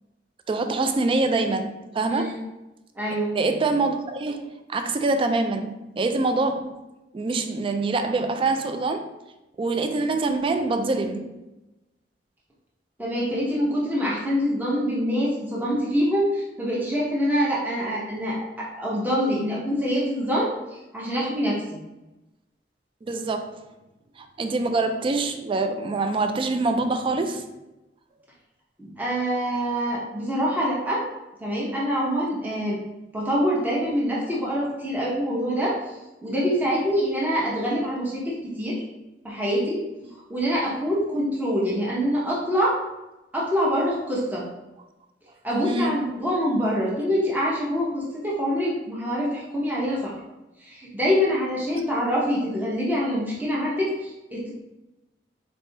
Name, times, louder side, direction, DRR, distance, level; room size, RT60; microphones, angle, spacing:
voice 1, 0.5-2.4 3.3-6.9 7.1-9.1 9.6-11.3 23.0-23.6 24.2-27.5 45.6-45.9, right 3 dB, 30° right, 7 dB, 0.3 m, -25 dB
voice 2, 2.1-2.4 3.0-3.4 13.0-21.8 28.8-31.0 31.4-32.8 33.1-36.0 36.2-38.8 39.2-39.8 40.3-42.8 43.3-44.4 45.4-50.2 50.6-54.5, equal, 10° right, -6 dB, 0.7 m, -25 dB
4.2 x 3.3 x 2.7 m, 1.0 s
head